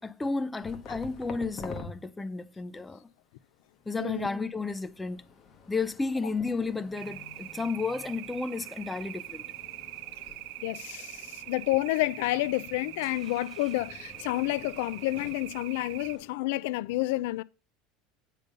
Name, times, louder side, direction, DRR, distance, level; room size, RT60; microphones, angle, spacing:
voice 1, 0.0-3.1 3.9-5.2 5.7-9.4, left 4 dB, 10° left, 0.4 m, -32 dB
sound 1, 0.6-1.9 3.6-16.3, left 5 dB, 25° left, 1.2 m, -49 dB
voice 2, 4.0-4.3 10.6-17.4, left 18 dB, 75° left, 0.3 m, -29 dB
sound 2, 7.0-16.2, right 18 dB, 70° right, 0.4 m, -43 dB
9.0 x 5.3 x 5.4 m
cardioid pair, 165°, 0 cm